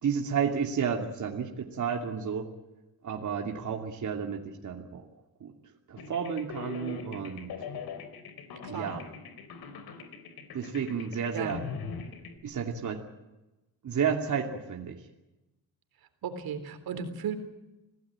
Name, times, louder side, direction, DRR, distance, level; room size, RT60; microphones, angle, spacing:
voice 1, 0.0-2.5 3.0-5.0 5.4-5.5 5.9-7.5 8.7-9.1 10.5-11.6 12.4-13.0 13.8-15.0, right 7 dB, 55° right, 2 dB, 2.7 m, -31 dB
sound 1, 6.0-12.4, left 6 dB, 80° left, 3.8 m, -41 dB
voice 2, 8.6-9.0 11.3-11.6 16.2-17.4, right 6 dB, 80° right, 9 dB, 3.6 m, -35 dB
26.0 x 17.0 x 8.8 m, 1.0 s
cardioid pair, 120°, 36 cm